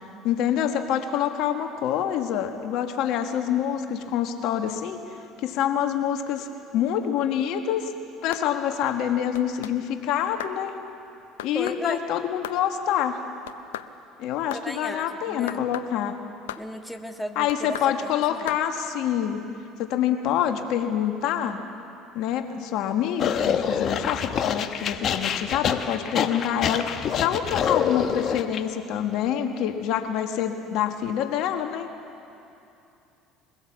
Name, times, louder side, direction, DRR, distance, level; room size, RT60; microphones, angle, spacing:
voice 1, 0.2-5.0 5.4-6.5 6.7-7.9 8.2-10.7 11.4-13.2 14.2-16.1 17.3-19.4 19.8-21.6 22.1-26.8 27.1-31.9, left 9 dB, 70° left, 6 dB, 1.5 m, -26 dB
sound 1, 8.3-8.5 9.3-9.8 10.4-10.6 11.4-11.8 12.4-12.6 13.5-13.9 14.5-14.7 15.5-15.9 16.5-16.7 17.5-17.9 18.5-18.6, left 13 dB, 90° left, 0.6 m, -36 dB
voice 2, 11.5-12.0 14.6-15.6 16.6-18.4, equal, 5° left, 4 dB, 1.6 m, -35 dB
sound 2, 23.2-28.6, left 7 dB, 50° left, 1.2 m, -26 dB
22.5 x 16.5 x 7.5 m, 2.7 s
hypercardioid pair, 75°, 0 cm